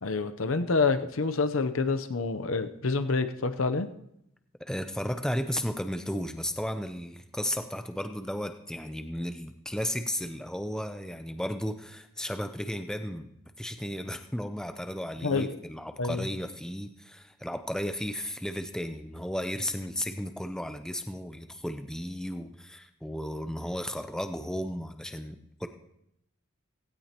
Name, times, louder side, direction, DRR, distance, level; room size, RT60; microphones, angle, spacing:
voice 1, 0.0-3.9 15.2-15.5 16.0-16.2, left 4 dB, 70° left, 9 dB, 0.7 m, -27 dB
voice 2, 4.6-13.3 13.6-25.7, equal, 5° left, 8 dB, 0.5 m, -34 dB
17.0 x 16.0 x 2.9 m, 0.79 s
head